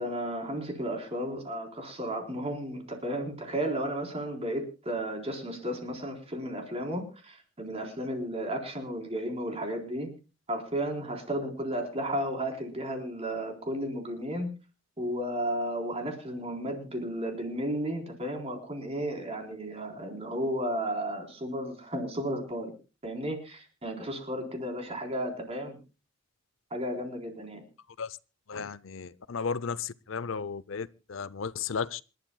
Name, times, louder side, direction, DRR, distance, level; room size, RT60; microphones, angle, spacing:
voice 1, 0.0-10.1 10.5-14.5 15.0-22.7 23.0-25.8 26.7-27.6, equal, 30° right, 3.9 m, -33 dB
voice 2, 28.5-32.0, left 5 dB, 75° left, 0.6 m, -34 dB
27.0 x 12.0 x 2.3 m
head